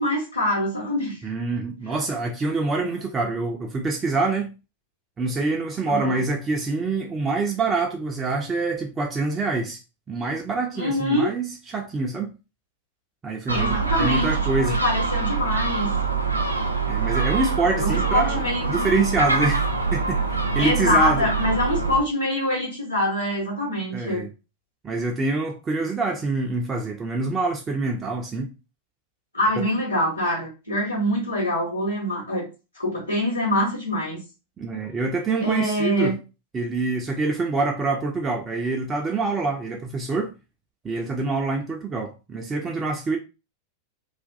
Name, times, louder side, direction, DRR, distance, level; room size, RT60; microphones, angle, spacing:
voice 1, 0.0-1.2 5.9-6.2 10.8-11.3 13.5-15.9 17.8-18.9 20.6-24.3 29.3-32.5 32.7-34.2 35.4-36.1, left 1 dB, 85° left, 1.0 m, -25 dB
voice 2, 1.2-4.5 5.2-9.8 10.1-12.3 13.2-14.8 16.8-19.6 19.9-20.2 20.5-21.2 23.9-24.3 24.8-28.5 34.6-36.1 36.5-40.3 40.8-43.2, right 3 dB, 20° right, 0.4 m, -25 dB
Gull seagull, 13.5-22.0, right 4 dB, 85° right, 0.4 m, -24 dB
2.4 x 2.2 x 2.6 m
figure-of-eight pair, 90°, 0 cm